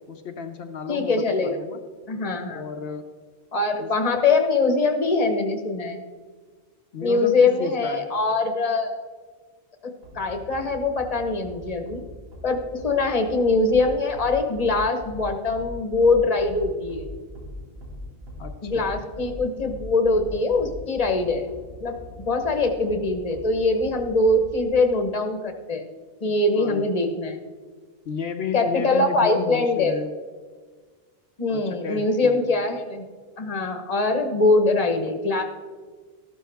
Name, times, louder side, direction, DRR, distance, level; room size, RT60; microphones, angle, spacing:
voice 1, 0.1-1.8 2.5-3.1 3.8-3.9 6.9-8.1 18.4-18.9 26.5-26.9 28.0-30.1 31.5-32.4, left 5 dB, 75° left, 5 dB, 1.0 m, -33 dB
voice 2, 0.9-1.6 2.1-2.6 3.5-6.0 7.0-9.0 9.8-12.0 12.4-17.0 18.6-21.5 21.8-25.9 26.2-27.4 28.5-30.0 31.4-33.0 33.4-35.4, left 3 dB, 40° left, 6 dB, 1.2 m, -23 dB
sound 1, 10.0-24.7, left 1 dB, 75° right, 2.5 m, -41 dB
14.0 x 12.0 x 3.5 m, 1.5 s
omnidirectional pair, 1.0 m